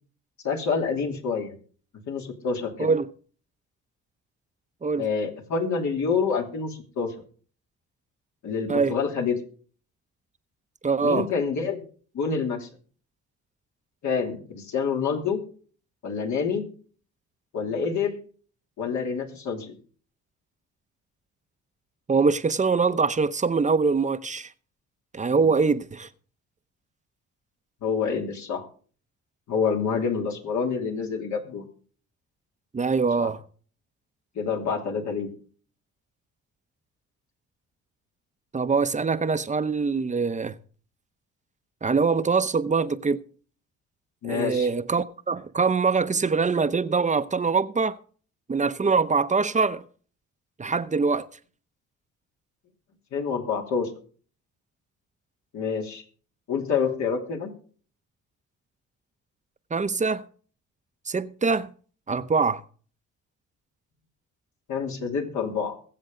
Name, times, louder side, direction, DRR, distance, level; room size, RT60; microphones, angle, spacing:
voice 1, 0.4-1.5 2.1-2.9 5.0-7.1 8.4-9.4 11.0-11.8 12.1-12.7 14.0-15.4 16.0-16.7 17.5-18.2 18.8-19.7 25.3-25.5 27.8-28.6 29.5-31.6 33.2-33.3 34.3-35.3 44.2-44.7 53.1-53.9 55.5-56.0 56.5-57.5 64.7-65.7, left 5 dB, 70° left, 2.9 m, -27 dB
voice 2, 10.8-11.3 22.1-24.5 25.1-26.1 32.7-33.4 38.5-40.6 41.8-43.2 44.2-48.0 48.5-49.8 50.6-51.3 59.7-60.2 61.1-61.7 62.1-62.6, right 4 dB, 25° right, 0.8 m, -23 dB
22.0 x 7.6 x 3.8 m
cardioid pair, 90°, 30 cm